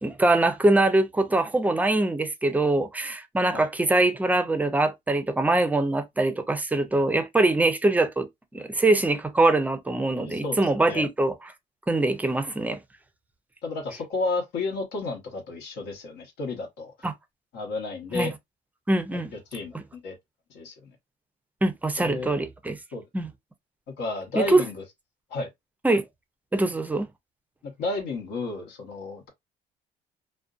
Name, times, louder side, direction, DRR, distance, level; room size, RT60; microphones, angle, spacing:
voice 1, 0.0-8.3 8.5-11.3 11.9-12.8 17.0-17.1 18.1-18.3 18.9-19.3 21.6-22.8 23.1-23.3 24.3-24.6 25.8-26.0 26.5-27.1, right 2 dB, 10° right, 0.4 m, -23 dB
voice 2, 10.1-11.0 13.6-16.9 17.5-18.3 19.1-20.2 20.5-20.9 22.0-22.3 22.9-23.0 24.0-24.8 25.3-25.5 27.6-29.3, left 3 dB, 80° left, 1.0 m, -32 dB
2.5 x 2.1 x 2.4 m
cardioid pair, 110°, 17 cm